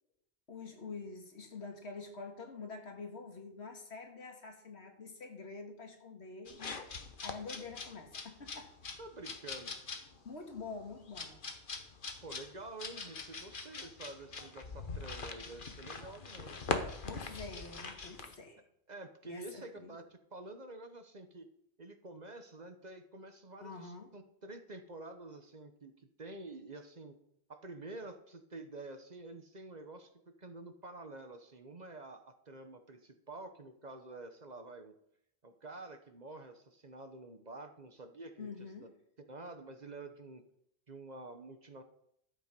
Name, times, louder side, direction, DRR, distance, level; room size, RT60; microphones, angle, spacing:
voice 1, 0.5-6.8 7.2-8.7 10.2-11.4 17.0-18.6 19.2-20.0 23.6-24.1 38.4-38.9, left 4 dB, 75° left, 4 dB, 2.1 m, -46 dB
sound 1, 6.5-18.3, left 4 dB, 50° left, 1.3 m, -42 dB
voice 2, 9.0-9.8 12.2-16.6 18.9-21.5 21.8-27.2 27.5-34.9 35.4-38.5 38.8-38.9 39.3-40.4 40.9-41.8, right 2 dB, 40° right, 7 dB, 1.1 m, -49 dB
12.5 x 8.3 x 5.3 m, 0.73 s
omnidirectional pair, 1.1 m